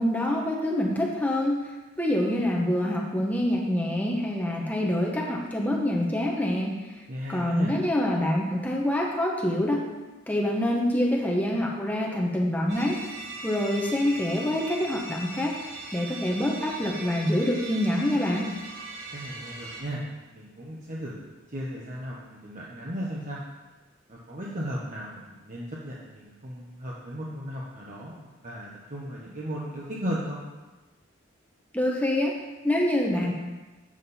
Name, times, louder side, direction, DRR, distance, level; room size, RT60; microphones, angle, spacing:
voice 1, 0.0-1.7 2.0-6.8 7.3-9.9 10.3-13.0 13.4-18.5 31.7-33.3, left 1 dB, 10° left, -2 dB, 0.9 m, -26 dB
voice 2, 7.1-7.7 19.1-23.4 24.1-30.4, equal, 40° right, -5 dB, 1.0 m, -36 dB
sound 1, 12.7-19.8, right 2 dB, 80° right, 3.1 m, -40 dB
7.5 x 7.3 x 4.1 m, 1.2 s
head